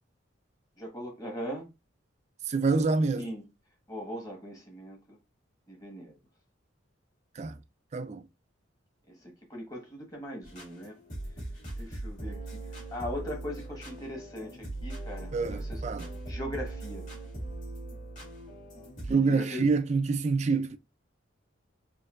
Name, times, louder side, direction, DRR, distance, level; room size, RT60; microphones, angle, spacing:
voice 1, 0.8-1.7 3.1-3.5 3.9-5.2 5.7-6.2 9.1-10.9 11.8-15.8 16.3-17.0 19.1-19.6, equal, 20° left, 1.2 m, -40 dB
voice 2, 2.5-3.3 7.4-7.6 7.9-8.2 15.3-16.1 19.1-20.8, right 4 dB, 35° right, 0.3 m, -27 dB
sound 1, 10.4-19.1, right 2 dB, 40° left, 1.7 m, -40 dB
4.3 x 2.6 x 2.4 m
head